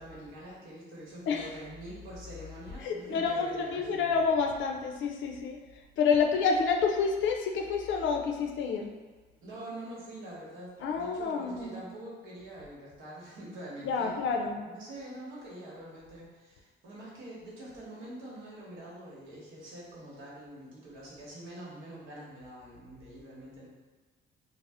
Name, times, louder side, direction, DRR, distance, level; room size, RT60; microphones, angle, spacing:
voice 1, 0.0-4.2 9.4-23.7, right 1 dB, 85° right, -6 dB, 1.0 m, -45 dB
voice 2, 2.8-5.6 6.0-8.9 10.8-11.8 13.8-14.6, left 5 dB, 75° left, 3 dB, 0.4 m, -28 dB
2.6 x 2.0 x 3.3 m, 1.3 s
cardioid pair, 90°, 20 cm